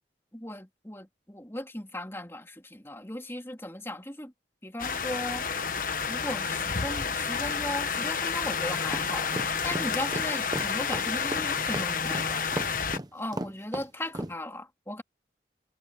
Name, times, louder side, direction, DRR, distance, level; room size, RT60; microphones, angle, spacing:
voice 1, 0.3-4.3 4.6-5.5 6.1-12.5 13.1-15.0, left 1 dB, 15° left, 2.8 m, -37 dB
sound 1, 4.8-13.0, left 6 dB, 50° left, 1.2 m, -30 dB
sound 2, 8.9-14.3, right 1 dB, 20° right, 1.0 m, -35 dB
head